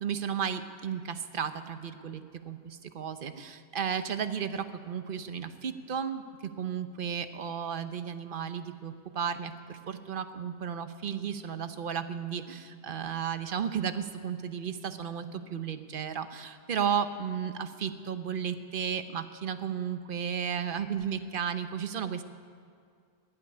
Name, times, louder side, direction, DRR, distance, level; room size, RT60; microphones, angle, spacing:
voice 1, 0.0-22.2, right 7 dB, 55° right, 10 dB, 0.9 m, -34 dB
14.5 x 8.2 x 10.0 m, 2.3 s
omnidirectional pair, 1.1 m